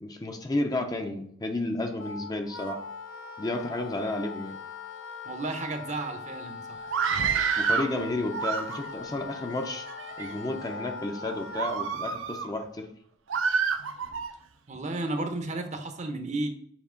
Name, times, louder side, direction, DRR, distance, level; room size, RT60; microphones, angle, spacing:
voice 1, 0.0-2.8 3.4-4.6 7.6-9.9 10.2-12.9, left 2 dB, 20° left, 4 dB, 0.6 m, -32 dB
Wind instrument woodwind instrument, 2.0-12.0, left 4 dB, 70° left, 0.9 m, -41 dB
voice 2, 5.2-6.8 14.7-16.5, right 2 dB, 40° right, 6 dB, 0.8 m, -33 dB
Screaming, 6.8-7.9 8.3-9.1 9.7-10.3 10.8-11.0 11.5-12.5 13.3-14.3, right 6 dB, 80° right, 0.6 m, -28 dB
7.1 x 2.9 x 5.0 m, 0.64 s
head